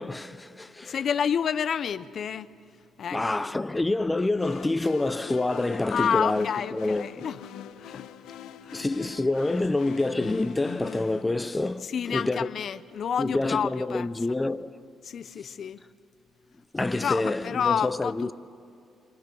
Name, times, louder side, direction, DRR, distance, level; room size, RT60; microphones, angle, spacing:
voice 1, 0.0-0.9 3.1-6.5 6.7-7.2 8.7-12.5 13.2-14.8 16.7-18.3, left 2 dB, 15° left, 0.7 m, -27 dB
voice 2, 0.8-2.5 3.0-3.6 5.9-7.4 7.8-8.1 8.6-8.8 11.8-14.1 15.0-15.8 16.9-18.3, left 7 dB, 60° left, 0.8 m, -29 dB
sound 1, 4.4-11.2, left 9 dB, 85° left, 1.0 m, -43 dB
28.5 x 27.5 x 6.4 m
cardioid pair, 90°, 0 cm